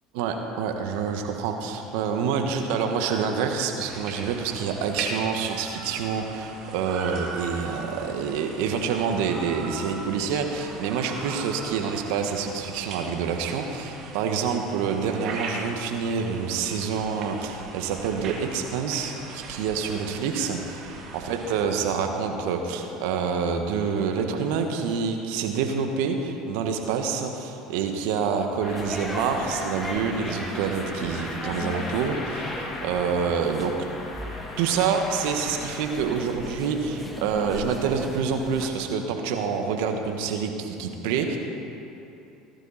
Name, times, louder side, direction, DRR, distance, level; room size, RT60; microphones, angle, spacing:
voice 1, 0.1-33.7 34.6-41.4, right 6 dB, 70° right, 4 dB, 1.5 m, -27 dB
sound 1, 3.8-21.7, right 3 dB, 50° right, 2.3 m, -39 dB
sound 2, 28.6-36.7, left 2 dB, 25° left, 2.9 m, -38 dB
sound 3, 28.7-38.7, left 1 dB, 5° left, 1.6 m, -37 dB
19.0 x 12.0 x 4.3 m, 2.9 s
hypercardioid pair, 75°, 0 cm